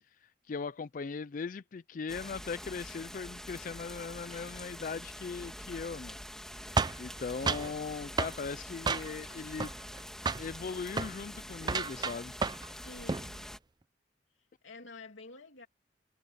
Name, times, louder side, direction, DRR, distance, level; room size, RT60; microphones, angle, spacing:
voice 1, 0.0-6.2 7.0-9.7 10.4-12.3, left 5 dB, 45° left, 0.4 m, -39 dB
sound 1, 2.1-13.6, equal, 5° left, 2.8 m, -45 dB
sound 2, 6.8-7.7 8.2-8.4 8.9-9.3 9.6-10.0 10.3-10.5 10.9-11.1 11.6-12.7 13.0-13.3, right 4 dB, 20° right, 0.4 m, -31 dB
voice 2, 12.8-13.5 14.6-15.7, left 3 dB, 85° left, 2.9 m, -49 dB
head